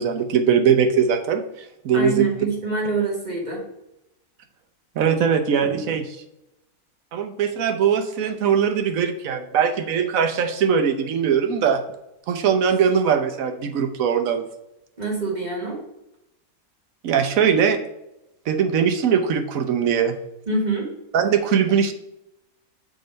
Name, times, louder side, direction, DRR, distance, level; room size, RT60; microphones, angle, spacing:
voice 1, 0.0-1.4 1.8-2.3 5.0-6.2 7.1-11.8 12.3-14.4 17.0-17.8 18.5-20.1 21.1-21.9, right 7 dB, 70° right, 6 dB, 1.1 m, -20 dB
voice 2, 1.9-3.6 15.0-15.8 20.5-20.9, right 3 dB, 30° right, -2 dB, 1.5 m, -25 dB
6.0 x 3.8 x 5.1 m, 0.88 s
omnidirectional pair, 1.5 m